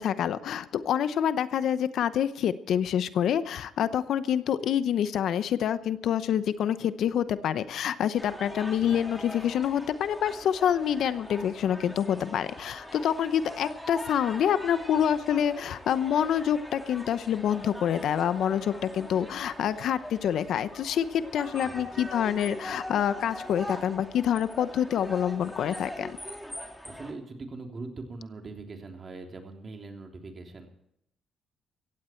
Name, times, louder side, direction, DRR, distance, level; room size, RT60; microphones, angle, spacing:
voice 1, 0.0-26.2, left 9 dB, 70° left, 14 dB, 0.8 m, -27 dB
sound 1, 8.2-27.1, equal, ahead, 3.3 m, -42 dB
voice 2, 8.6-9.0 21.6-22.0 26.8-30.7, right 3 dB, 35° right, 3 dB, 3.3 m, -42 dB
16.5 x 15.5 x 4.5 m, 0.77 s
cardioid pair, 90°, 0 cm